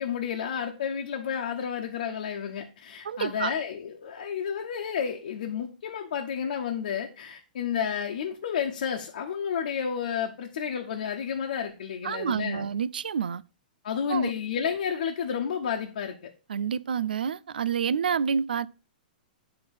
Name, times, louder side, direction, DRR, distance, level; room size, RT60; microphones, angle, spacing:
voice 1, 0.0-12.7 13.8-16.3, left 7 dB, 70° left, 1.1 m, -31 dB
voice 2, 3.0-3.5 12.0-13.4 14.1-14.3 16.5-18.7, right 7 dB, 85° right, 0.3 m, -28 dB
9.0 x 3.9 x 5.5 m
hypercardioid pair, 125°, 5 cm